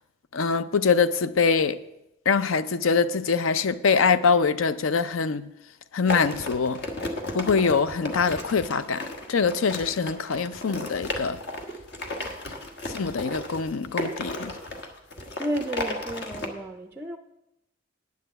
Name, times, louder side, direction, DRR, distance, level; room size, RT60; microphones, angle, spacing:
voice 1, 0.3-1.8 2.3-5.5 5.9-6.8 7.3-9.0 9.3-11.4 12.9-14.5, left 5 dB, 70° left, 0.5 m, -23 dB
sound 1, 6.1-16.5, left 1 dB, 55° left, 1.3 m, -34 dB
voice 2, 15.4-17.2, right 1 dB, 10° right, 0.4 m, -32 dB
9.4 x 6.7 x 7.9 m
head